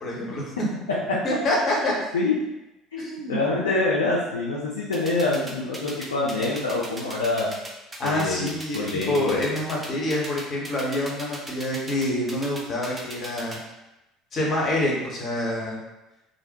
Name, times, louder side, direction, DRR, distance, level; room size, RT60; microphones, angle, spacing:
voice 1, 0.0-0.4 1.2-1.9 3.0-3.4 8.0-13.6 14.3-15.8, left 1 dB, 40° left, -3 dB, 0.8 m, -26 dB
voice 2, 2.9-7.5 8.0-9.4, left 3 dB, 80° left, -6 dB, 0.4 m, -26 dB
sound 1, 4.9-13.6, right 1 dB, 20° right, 0.6 m, -38 dB
2.5 x 2.1 x 2.7 m, 0.97 s
figure-of-eight pair, 60°, 0 cm